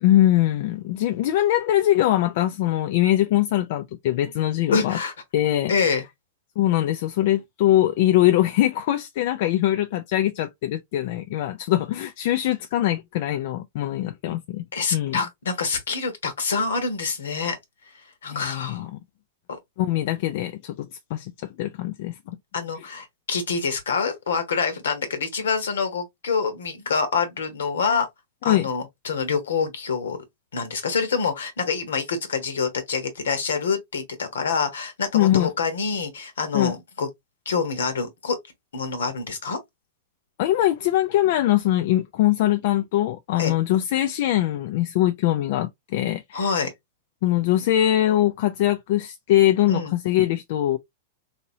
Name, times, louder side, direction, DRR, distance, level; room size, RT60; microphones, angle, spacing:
voice 1, 0.0-5.0 5.3-5.7 6.6-14.6 14.9-15.2 18.3-19.0 19.8-20.9 21.1-21.3 21.6-22.2 28.5-28.7 35.1-35.5 36.5-36.7 40.4-46.4 47.2-50.8, left 13 dB, 60° left, 0.3 m, -22 dB
voice 2, 4.7-5.1 5.7-6.0 14.7-17.6 18.2-18.9 22.5-28.1 28.4-30.2 30.5-37.1 37.4-38.4 38.7-39.6 43.4-43.5 46.3-46.7 49.7-49.9, left 5 dB, 85° left, 1.1 m, -26 dB
2.9 x 2.8 x 2.7 m
hypercardioid pair, 110°, 0 cm